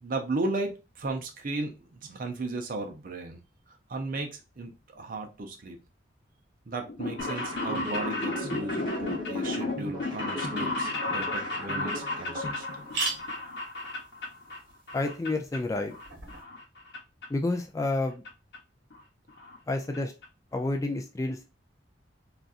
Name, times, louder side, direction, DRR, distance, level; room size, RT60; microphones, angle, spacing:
voice 1, 0.0-3.4 3.7-5.8 6.7-12.7, right 2 dB, 50° right, 4 dB, 0.6 m, -35 dB
sound 1, 6.9-14.6 14.9-15.6 15.9-17.0 17.2-17.3 18.3-18.4 18.5-18.6 18.9-19.0 19.3-19.6 19.9-20.0 20.2-20.3, left 2 dB, 65° left, 0.9 m, -33 dB
sound 2, 7.2-13.2, equal, 25° right, 1.1 m, -39 dB
sound 3, 11.3-11.4 11.9-12.0 12.2-12.3 12.6-16.4, right 4 dB, 65° right, 1.1 m, -39 dB
voice 2, 14.9-15.9 17.3-18.2 19.7-20.1 20.5-21.5, left 2 dB, 15° left, 4 dB, 0.3 m, -29 dB
4.0 x 2.4 x 2.4 m, 0.28 s
head